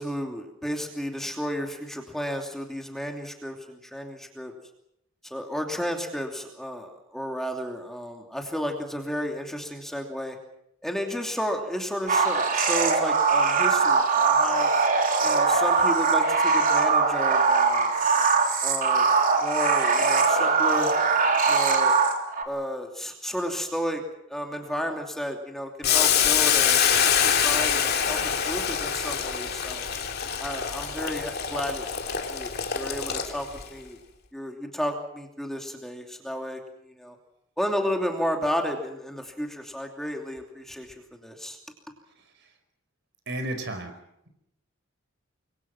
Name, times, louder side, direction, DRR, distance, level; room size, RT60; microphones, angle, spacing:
voice 1, 0.0-4.5 5.2-10.4 10.8-14.7 15.2-17.9 18.6-19.1 19.4-20.9 21.5-22.0 22.4-24.0 24.3-29.9 30.4-31.9 32.3-34.0 34.3-36.6 36.9-37.2 37.6-40.9 41.2-41.6, equal, ahead, 2 dB, 2.8 m, -32 dB
sound 1, 12.1-22.4, right 4 dB, 45° right, 3.6 m, -21 dB
Boiling, 25.8-33.6, left 8 dB, 50° left, 3.0 m, -25 dB
voice 2, 43.3-43.9, right 1 dB, 60° right, 7 dB, 4.9 m, -32 dB
27.5 x 23.0 x 6.0 m, 0.77 s
head